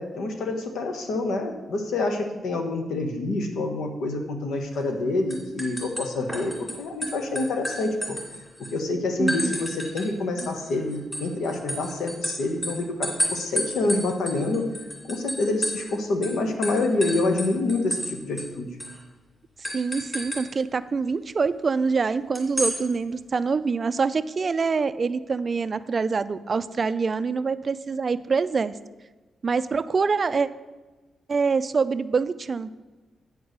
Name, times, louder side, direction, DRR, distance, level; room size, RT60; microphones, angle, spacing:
voice 1, 0.0-8.2 8.7-14.6 15.1-18.8, left 2 dB, 90° left, 4 dB, 1.2 m, -27 dB
sound 1, 4.7-5.0 5.3-6.7 7.0-8.7 9.3-10.1 10.4-15.9 16.2-16.3 16.6-18.1 18.4-18.5 18.8-19.0 19.6-20.4 22.3-22.8, equal, 15° left, 2.8 m, -31 dB
voice 2, 9.2-9.5 19.7-28.7 29.4-30.5 31.3-32.7, right 5 dB, 35° right, 13 dB, 0.3 m, -25 dB
8.8 x 4.7 x 6.6 m, 1.2 s
wide cardioid pair, 155°, 0 cm